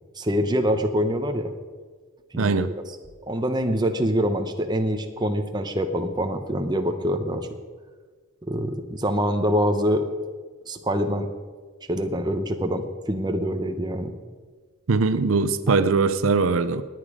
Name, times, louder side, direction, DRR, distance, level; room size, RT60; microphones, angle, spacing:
voice 1, 0.2-1.5 2.3-2.7 3.3-7.5 8.5-10.0 10.7-11.3 11.9-14.1 15.7-15.8, equal, 20° right, 6 dB, 0.9 m, -25 dB
voice 2, 2.4-2.7 14.9-16.8, right 4 dB, 75° right, 12 dB, 0.6 m, -21 dB
18.5 x 9.2 x 5.0 m, 1.5 s
head